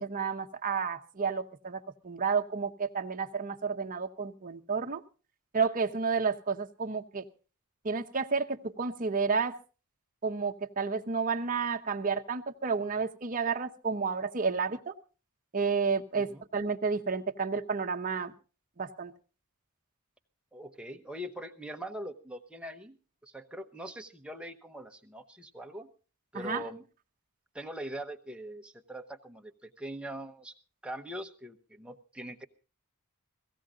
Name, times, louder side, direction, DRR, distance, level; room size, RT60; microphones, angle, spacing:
voice 1, 0.0-5.0 5.5-7.2 7.8-9.6 10.2-14.9 15.5-18.3 18.8-19.1 26.3-26.6, right 5 dB, 40° right, 5 dB, 0.9 m, -31 dB
voice 2, 20.5-23.0 23.2-25.9 26.3-26.8 27.5-30.5 30.8-32.4, equal, 5° right, 4 dB, 0.9 m, -42 dB
17.0 x 15.5 x 3.7 m, 0.35 s
head